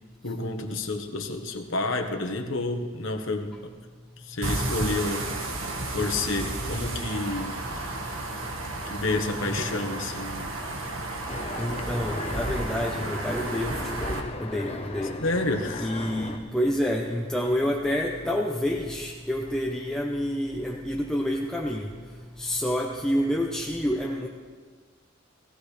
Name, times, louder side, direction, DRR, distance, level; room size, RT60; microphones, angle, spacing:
voice 1, 0.2-3.5 4.2-5.3 5.9-7.5 8.8-10.5 15.2-15.9, left 2 dB, 65° left, 4 dB, 1.4 m, -29 dB
sound 1, 4.4-14.2, right 2 dB, 85° right, 1.6 m, -32 dB
voice 2, 9.5-9.9 11.6-15.2 15.8-21.9 22.4-24.3, equal, 5° left, -1 dB, 0.8 m, -28 dB
sound 2, 11.3-16.4, left 2 dB, 30° left, 1.0 m, -37 dB
20.0 x 15.5 x 3.3 m, 1.5 s
head